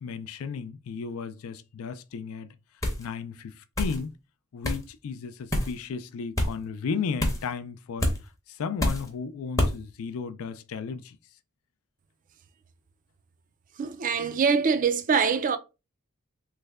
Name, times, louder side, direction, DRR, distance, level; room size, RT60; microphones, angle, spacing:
voice 1, 0.0-2.5 3.0-4.1 4.5-8.1 8.5-11.2, left 5 dB, 65° left, 0.4 m, -34 dB
sound 1, 2.8-3.1 3.8-4.0 4.6-4.8 5.5-5.7 6.4-6.5 7.2-7.5 8.0-8.2 8.8-9.1 9.6-9.8, left 1 dB, 15° left, 0.7 m, -26 dB
voice 2, 13.8-15.6, right 5 dB, 35° right, 0.3 m, -24 dB
3.2 x 2.1 x 3.5 m
head